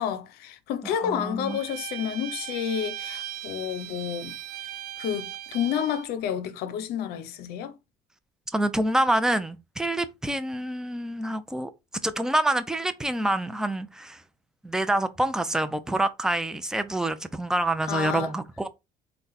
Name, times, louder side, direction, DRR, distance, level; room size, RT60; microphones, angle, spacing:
voice 1, 0.0-4.4 5.0-7.8 17.8-18.3, left 9 dB, 80° left, 0.6 m, -30 dB
voice 2, 1.0-1.6 8.5-11.7 12.0-14.2 14.6-18.7, right 1 dB, 5° right, 0.5 m, -27 dB
Bowed string instrument, 1.4-6.1, right 13 dB, 65° right, 0.5 m, -38 dB
3.7 x 2.2 x 4.0 m
cardioid pair, 95°, 16 cm